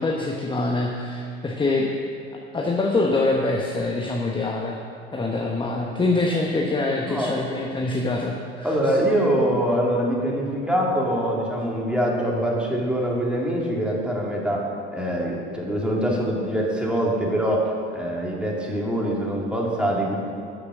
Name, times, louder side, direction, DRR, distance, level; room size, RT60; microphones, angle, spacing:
voice 1, 0.0-1.9 2.5-4.8 5.1-8.7, left 2 dB, 15° left, -1 dB, 1.2 m, -24 dB
voice 2, 8.6-20.2, right 1 dB, 5° right, -3 dB, 2.7 m, -24 dB
12.5 x 6.7 x 6.3 m, 2.4 s
hypercardioid pair, 75°, 33 cm